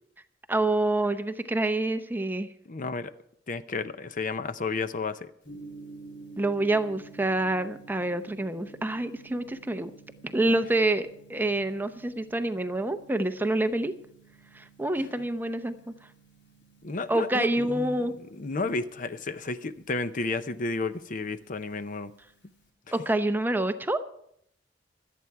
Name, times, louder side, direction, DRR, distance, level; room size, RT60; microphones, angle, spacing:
voice 1, 0.5-2.5 6.4-9.9 10.2-13.9 14.5-15.9 17.1-18.2 22.9-24.0, right 2 dB, 10° right, 9 dB, 0.6 m, -27 dB
voice 2, 2.7-3.1 3.5-5.3 16.8-22.1, left 3 dB, 45° left, 12 dB, 0.7 m, -32 dB
Gong, 5.4-22.7, right 3 dB, 65° left, 3.3 m, -52 dB
25.0 x 8.6 x 4.7 m, 0.70 s
head